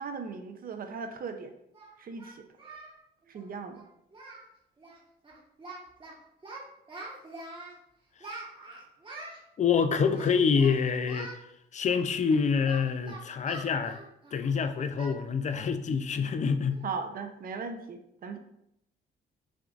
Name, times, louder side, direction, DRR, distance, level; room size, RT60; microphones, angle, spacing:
voice 1, 0.0-1.5 2.0-2.5 3.3-3.8 16.8-18.4, right 5 dB, 45° right, 7 dB, 0.6 m, -38 dB
Singing, 0.9-1.0 1.7-3.0 3.2-3.4 3.7-3.9 4.1-4.5 4.8-5.0 5.2-6.1 6.4-7.8 8.2-9.4 10.1-10.8 11.1-11.4 11.9-14.5 15.0-15.2 15.5-15.7 16.1-16.2 16.7-17.0, right 2 dB, 25° right, 1.2 m, -45 dB
voice 2, 9.6-11.3 11.7-14.0 14.3-16.8, left 6 dB, 35° left, 9 dB, 0.4 m, -26 dB
5.9 x 2.5 x 2.4 m, 0.79 s
cardioid pair, 90°, 20 cm